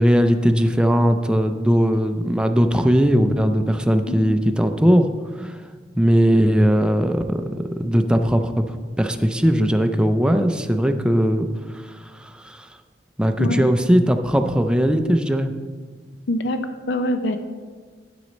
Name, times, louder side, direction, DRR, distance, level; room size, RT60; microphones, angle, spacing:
voice 1, 0.0-5.1 5.4-5.6 6.0-7.4 7.8-12.7 13.2-15.5, equal, 5° right, 6 dB, 0.4 m, -19 dB
voice 2, 16.3-16.6 16.9-17.4, left 1 dB, 75° left, 8 dB, 0.5 m, -23 dB
8.5 x 6.2 x 4.1 m, 1.5 s
head